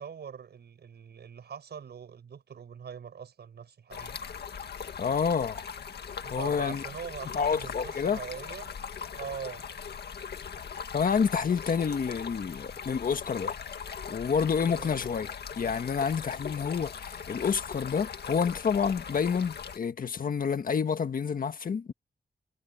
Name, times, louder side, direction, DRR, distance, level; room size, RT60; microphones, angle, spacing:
voice 1, 0.0-4.2 6.2-8.8 9.1-9.7 14.6-15.0, right 7 dB, 75° right, 6.0 m, -42 dB
Stream, 3.9-19.8, left 7 dB, 70° left, 1.9 m, -40 dB
voice 2, 5.0-5.6 6.3-6.8 7.3-8.2 10.9-13.6 14.1-21.9, left 6 dB, 55° left, 1.7 m, -28 dB
wide cardioid pair, 175°, 17 cm